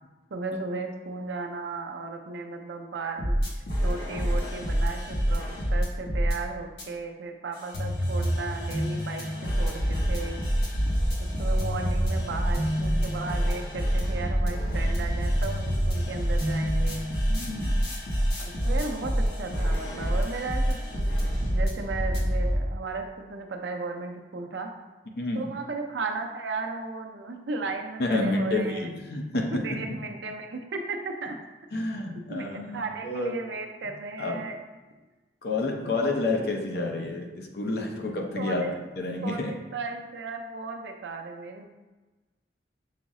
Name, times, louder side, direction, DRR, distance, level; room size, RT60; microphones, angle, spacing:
voice 1, 0.3-3.4 3.8-10.4 11.2-17.0 18.4-24.7 25.3-28.9 29.3-31.4 32.3-34.6 38.3-38.8 39.2-41.7, right 3 dB, 85° right, 3 dB, 0.5 m, -35 dB
sound 1, 3.2-6.3 6.8-6.9 7.5-22.6, equal, 80° left, 1.1 m, -27 dB
voice 2, 17.3-17.8 25.2-25.5 28.0-30.0 31.7-33.3 34.2-34.4 35.4-39.5, left 2 dB, 60° left, 1 dB, 0.6 m, -29 dB
5.7 x 2.0 x 3.6 m, 1.2 s
head